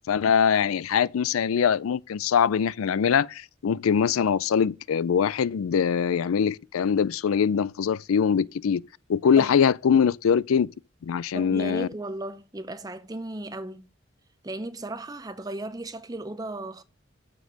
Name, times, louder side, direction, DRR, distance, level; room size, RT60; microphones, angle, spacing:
voice 1, 0.1-8.8 9.1-10.7 11.0-11.9, left 7 dB, 85° left, 0.4 m, -23 dB
voice 2, 11.3-13.9 14.4-16.8, right 2 dB, 20° right, 0.5 m, -36 dB
7.2 x 6.4 x 6.2 m
head